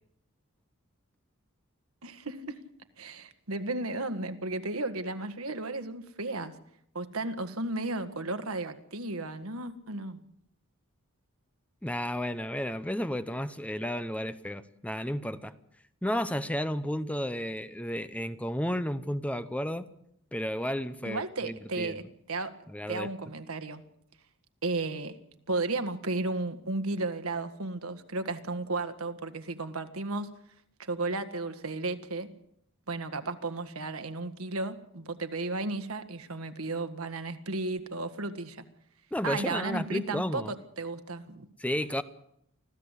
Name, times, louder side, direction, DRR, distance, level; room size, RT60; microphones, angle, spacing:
voice 1, 2.0-2.6 3.0-6.5 7.0-10.2 21.1-22.5 22.9-23.8 24.6-25.2 25.5-30.3 30.8-32.3 32.9-38.7 39.2-41.5, right 2 dB, 75° right, 1.7 m, -34 dB
voice 2, 11.8-15.5 16.0-19.9 20.3-22.0 22.7-23.1 39.1-40.5 41.6-42.0, equal, 5° left, 0.8 m, -32 dB
25.5 x 15.5 x 8.3 m
head